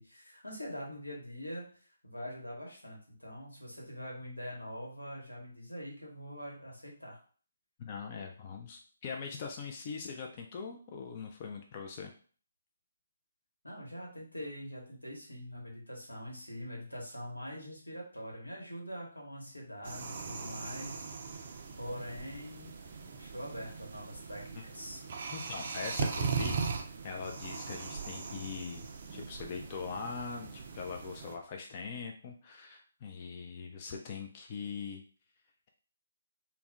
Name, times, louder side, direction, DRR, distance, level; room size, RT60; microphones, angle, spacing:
voice 1, 0.0-1.6 2.0-7.2 13.6-22.8 23.2-25.0, equal, 90° left, -2 dB, 1.1 m, -44 dB
voice 2, 7.8-12.1 25.3-35.0, left 5 dB, 30° left, 2 dB, 0.3 m, -42 dB
sound 1, 19.8-31.4, right 5 dB, 40° right, 0.4 m, -39 dB
2.3 x 2.0 x 3.5 m, 0.42 s
figure-of-eight pair, 145°, 0 cm